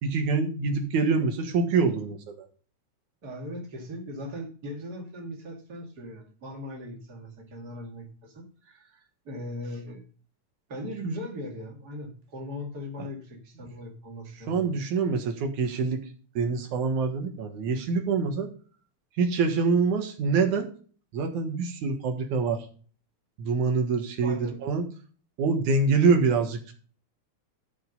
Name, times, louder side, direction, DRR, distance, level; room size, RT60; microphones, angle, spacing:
voice 1, 0.0-2.5 14.5-16.0 16.4-18.5 19.2-20.7 21.1-22.7 23.4-24.8 25.4-26.6, right 4 dB, 85° right, 5 dB, 2.9 m, -25 dB
voice 2, 3.2-10.0 10.7-14.8 24.2-24.6, equal, 35° right, 1 dB, 2.8 m, -39 dB
13.0 x 5.2 x 5.3 m, 0.41 s
omnidirectional pair, 3.3 m